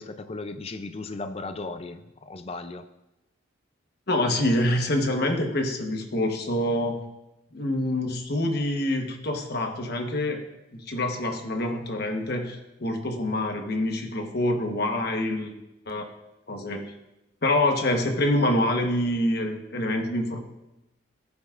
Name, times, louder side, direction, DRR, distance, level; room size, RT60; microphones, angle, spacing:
voice 1, 0.0-2.9, left 3 dB, 30° left, 9 dB, 0.4 m, -36 dB
voice 2, 4.1-7.0 7.5-10.4 10.7-15.5 15.9-16.1 16.5-16.8 17.4-20.4, left 1 dB, 50° left, 4 dB, 1.1 m, -26 dB
14.5 x 9.5 x 2.5 m, 0.95 s
head